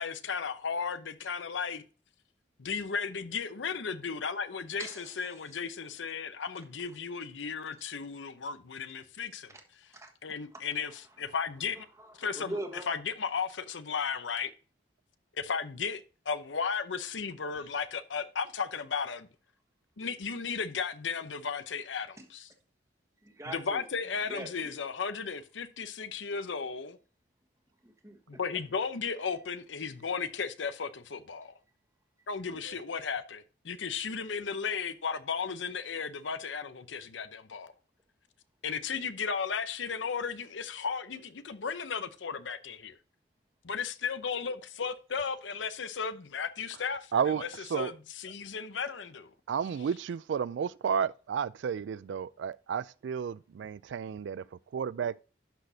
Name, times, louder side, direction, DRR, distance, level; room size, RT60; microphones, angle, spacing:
voice 1, 0.0-1.8 2.6-9.5 10.2-10.9 11.2-11.9 12.2-12.5 12.9-14.5 15.3-19.3 20.0-22.5 23.5-27.0 28.3-31.5 32.3-37.7 38.6-43.0 43.6-47.5 47.7-49.3, left 5 dB, 85° left, 0.7 m, -35 dB
voice 2, 4.8-5.5 6.6-6.7 9.5-9.6 9.9-10.7 11.3-11.4 11.8-12.9 22.2-22.3 23.2-23.8 24.2-24.8 27.8-28.2, right 1 dB, 15° right, 1.3 m, -43 dB
voice 3, 47.1-47.9 49.5-55.2, right 7 dB, 75° right, 0.3 m, -32 dB
11.5 x 6.1 x 2.7 m
head